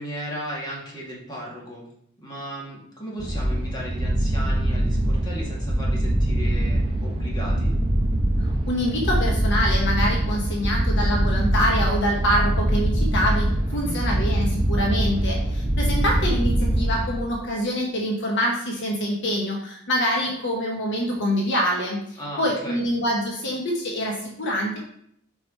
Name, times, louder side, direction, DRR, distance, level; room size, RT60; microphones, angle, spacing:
voice 1, 0.0-1.8 2.2-7.7 13.7-14.0 22.2-22.8, equal, 20° left, -4 dB, 1.9 m, -36 dB
sound 1, 3.2-17.5, right 1 dB, 25° right, 0.8 m, -23 dB
voice 2, 8.7-24.8, equal, 60° left, -1 dB, 1.1 m, -25 dB
4.9 x 4.9 x 4.4 m, 0.69 s
head